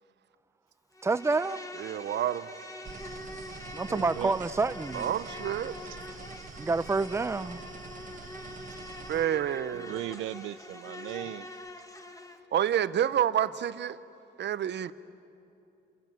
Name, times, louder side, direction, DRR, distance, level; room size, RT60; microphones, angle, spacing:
Insect, 0.9-12.4, left 2 dB, 15° left, 2.0 m, -44 dB
voice 1, 1.0-1.6 3.7-5.1 6.6-7.6, right 3 dB, 15° right, 0.6 m, -28 dB
voice 2, 1.8-2.5 4.9-5.7 9.1-9.9 12.5-14.0 14.4-14.9, right 10 dB, 60° right, 0.9 m, -28 dB
sound 1, 2.8-9.3, right 5 dB, 40° right, 1.7 m, -46 dB
voice 3, 3.9-4.4 5.8-6.0 9.7-11.6, right 14 dB, 85° right, 0.5 m, -38 dB
29.5 x 27.0 x 7.4 m
cardioid pair, 90°, 20 cm